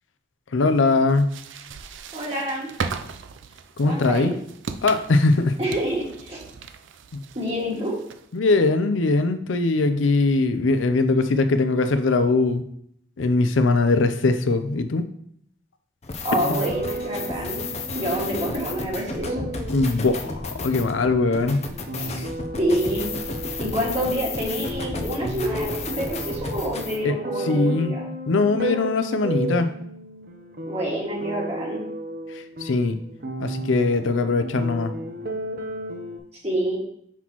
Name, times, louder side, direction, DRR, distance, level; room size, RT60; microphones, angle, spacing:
voice 1, 0.5-1.4 3.8-4.3 4.8-5.6 7.1-7.2 8.3-12.6 13.2-15.0 16.5-16.6 19.7-21.7 27.0-27.1 27.5-27.9 28.3-29.7 32.6-33.0 33.4-34.9, left 3 dB, 90° left, 9 dB, 0.5 m, -21 dB
sound 1, 1.1-8.4, right 5 dB, 85° right, 0.5 m, -37 dB
voice 2, 2.1-2.7 3.8-4.3 5.6-6.4 7.3-7.9 16.2-17.6 17.9-19.5 22.0-22.1 22.6-23.1 23.6-28.0 30.7-31.8 36.4-36.8, equal, 35° right, -4 dB, 2.0 m, -27 dB
sound 2, 16.0-27.0, left 3 dB, 35° left, 0.6 m, -33 dB
sound 3, 16.4-36.2, right 1 dB, 50° right, 0.8 m, -34 dB
6.0 x 5.6 x 3.0 m, 0.68 s
head